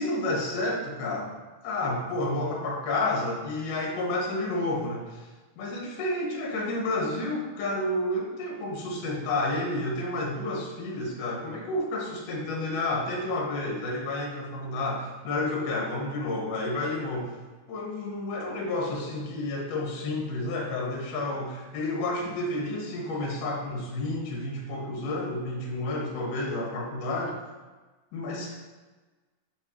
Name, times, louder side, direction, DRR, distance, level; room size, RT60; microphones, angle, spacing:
voice 1, 0.0-1.4 1.6-5.3 5.6-17.4 17.7-27.3 28.1-28.5, left 2 dB, 75° left, -2 dB, 2.7 m, -30 dB
9.8 x 4.0 x 3.0 m, 1.3 s
omnidirectional pair, 3.7 m